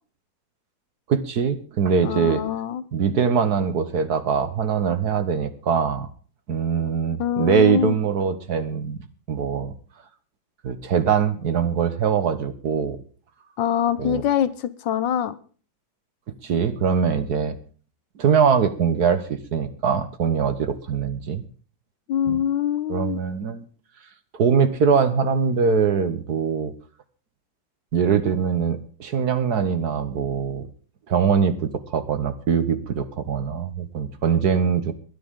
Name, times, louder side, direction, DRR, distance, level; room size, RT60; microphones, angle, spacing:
voice 1, 1.1-2.4 2.9-6.1 6.5-9.0 9.3-9.7 10.6-13.0 14.0-14.2 16.4-17.6 18.2-21.4 22.3-22.4 22.9-23.7 24.3-26.7 27.9-30.7 31.1-34.9, right 6 dB, 55° right, 12 dB, 1.6 m, -22 dB
voice 2, 2.0-2.8 7.2-7.9 13.6-15.3 22.1-23.2, left 9 dB, 70° left, 16 dB, 1.4 m, -24 dB
22.0 x 10.5 x 3.7 m, 0.40 s
omnidirectional pair, 2.1 m